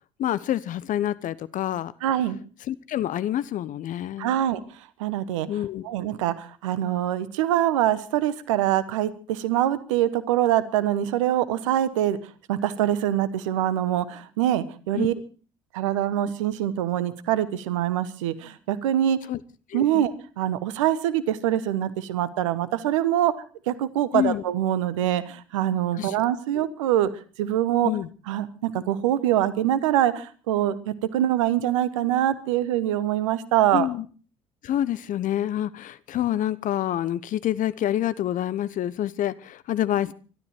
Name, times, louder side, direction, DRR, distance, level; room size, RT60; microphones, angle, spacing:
voice 1, 0.2-1.9 2.7-4.4 5.5-5.9 14.9-15.1 19.3-19.4 19.7-20.1 24.1-24.4 25.9-26.2 26.5-26.6 27.8-28.1 33.7-34.1 34.6-40.1, left 12 dB, 55° left, 1.0 m, -27 dB
voice 2, 2.0-2.4 4.2-4.6 5.0-5.5 5.8-12.2 12.5-15.1 15.7-19.2 19.7-23.3 23.7-27.1 27.4-27.9 28.3-33.9, right 12 dB, 80° right, 1.2 m, -24 dB
23.5 x 13.0 x 4.4 m
hypercardioid pair, 55°, 16 cm